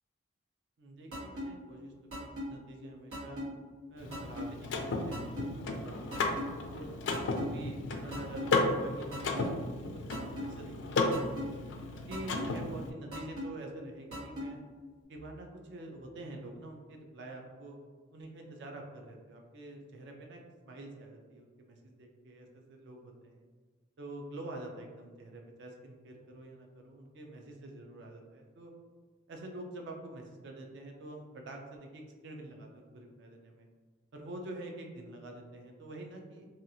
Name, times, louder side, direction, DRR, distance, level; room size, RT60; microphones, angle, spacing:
voice 1, 0.8-1.9 2.2-3.4 3.9-6.9 7.4-11.5 11.9-14.6 15.1-17.8 18.1-23.5 24.0-28.7 29.3-33.7 34.1-36.5, right 2 dB, 55° right, 1 dB, 0.4 m, -47 dB
sound 1, 1.1-1.5 2.1-2.5 3.1-3.5 4.1-4.5 5.1-5.5 6.1-6.5 7.1-7.5 8.1-8.5 9.1-9.5 10.1-10.5 11.1-11.5 12.1-12.5 13.1-13.5 14.1-14.5, left 1 dB, 85° right, 1.3 m, -38 dB
Car / Mechanisms, 4.0-12.9, left 2 dB, 60° left, 0.3 m, -34 dB
2.8 x 2.3 x 2.6 m, 1.5 s
head